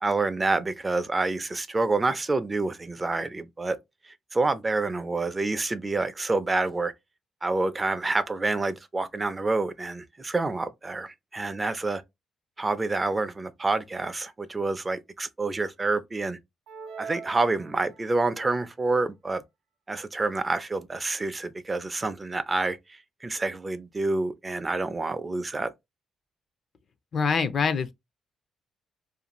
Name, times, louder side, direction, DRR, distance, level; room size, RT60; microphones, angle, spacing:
voice 1, 0.0-3.8 4.0-6.9 7.4-12.0 12.6-16.4 17.0-19.4 19.9-25.7, right 3 dB, 25° right, 0.4 m, -28 dB
sound 1, 16.7-18.3, right 6 dB, 90° right, 0.4 m, -42 dB
voice 2, 27.1-27.9, left 5 dB, 50° left, 0.4 m, -24 dB
2.5 x 2.3 x 2.9 m
cardioid pair, 90°, 0 cm